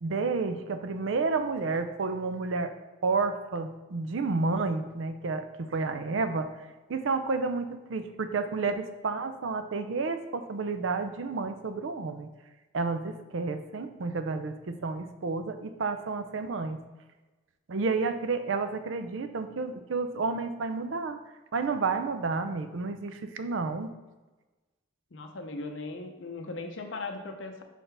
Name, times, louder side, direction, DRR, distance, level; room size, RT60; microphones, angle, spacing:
voice 1, 0.0-2.7 3.0-6.5 6.9-12.3 12.7-16.8 17.7-21.2 21.5-23.9, right 4 dB, 75° right, 9 dB, 0.5 m, -30 dB
voice 2, 25.1-27.6, left 3 dB, 70° left, 5 dB, 0.7 m, -38 dB
6.5 x 4.5 x 3.3 m, 1.1 s
head